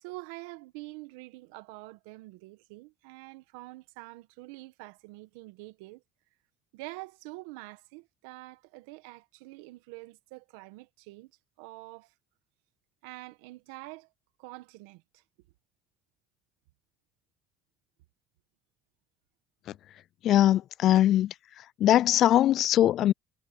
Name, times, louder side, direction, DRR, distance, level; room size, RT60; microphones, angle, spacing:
voice 1, 0.0-6.0 6.7-11.3 11.6-12.1 13.0-14.1 14.4-15.2, right 22 dB, 85° right, 1.6 m, -46 dB
voice 2, 20.2-21.3 21.8-23.1, left 12 dB, 65° left, 0.3 m, -21 dB
hypercardioid pair, 65°, 0 cm